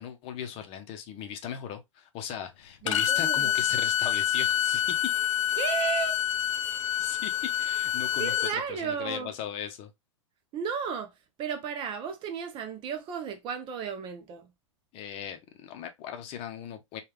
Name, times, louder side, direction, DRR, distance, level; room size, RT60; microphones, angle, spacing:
voice 1, 0.0-5.1 7.0-8.3 8.7-9.9 14.9-17.0, left 8 dB, 35° left, 0.7 m, -38 dB
voice 2, 2.8-3.5 5.6-6.2 6.6-6.7 8.2-9.3 10.5-14.5, right 7 dB, 30° right, 0.7 m, -34 dB
Bowed string instrument, 2.9-8.6, left 11 dB, 70° left, 0.4 m, -27 dB
3.3 x 2.4 x 3.1 m
hypercardioid pair, 110°, 16 cm